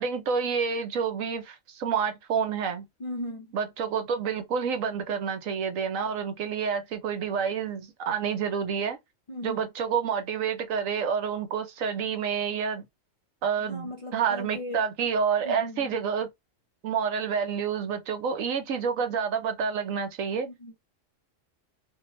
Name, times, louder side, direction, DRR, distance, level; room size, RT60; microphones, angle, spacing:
voice 1, 0.0-2.9 3.5-9.0 9.4-12.8 13.4-16.3 16.8-20.5, right 6 dB, 85° right, 1.2 m, -28 dB
voice 2, 3.0-3.5 9.3-9.7 13.6-14.8 15.4-16.0 20.4-20.7, left 1 dB, 45° left, 0.4 m, -38 dB
2.5 x 2.5 x 3.0 m
omnidirectional pair, 1.4 m